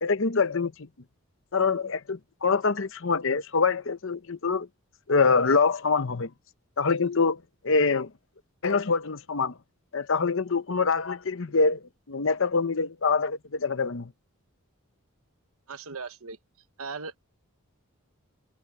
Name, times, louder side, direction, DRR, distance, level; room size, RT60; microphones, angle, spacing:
voice 1, 0.0-0.9 1.5-4.7 5.1-6.3 6.8-8.1 8.6-9.5 9.9-11.8 12.1-14.1, left 4 dB, 60° left, 0.8 m, -25 dB
voice 2, 15.7-16.4 16.8-17.2, right 4 dB, 75° right, 1.2 m, -37 dB
head